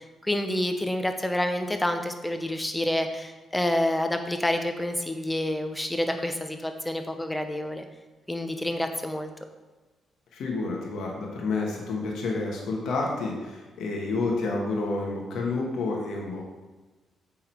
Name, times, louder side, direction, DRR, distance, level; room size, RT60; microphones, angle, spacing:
voice 1, 0.0-7.8 8.3-9.3, left 1 dB, 10° left, 6 dB, 0.9 m, -28 dB
voice 2, 10.3-16.4, left 3 dB, 75° left, -1 dB, 1.4 m, -29 dB
8.7 x 3.8 x 4.6 m, 1.2 s
cardioid pair, 75°, 0 cm